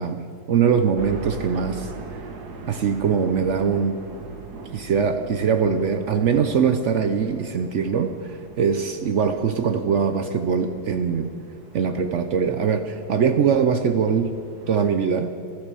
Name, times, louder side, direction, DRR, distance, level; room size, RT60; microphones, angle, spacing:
voice 1, 0.0-1.9 2.7-4.0 4.7-11.3 11.7-14.3 14.7-15.3, right 6 dB, 80° right, 8 dB, 0.6 m, -22 dB
sound 1, 1.0-14.9, right 4 dB, 60° right, 1.7 m, -41 dB
12.5 x 11.5 x 6.8 m, 2.4 s
omnidirectional pair, 2.0 m